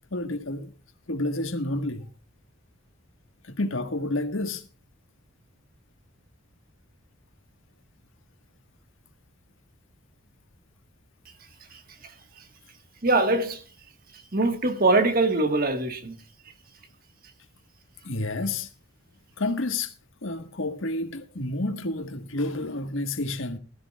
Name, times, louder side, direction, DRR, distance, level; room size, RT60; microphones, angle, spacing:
voice 1, 0.1-0.7 1.1-2.1 3.4-4.7 18.0-18.7 19.4-19.9 20.2-23.6, left 2 dB, 75° left, 1.4 m, -29 dB
voice 2, 11.7-12.4 13.0-13.6 14.3-16.2, right 2 dB, 45° right, 1.4 m, -23 dB
20.5 x 13.5 x 2.3 m
head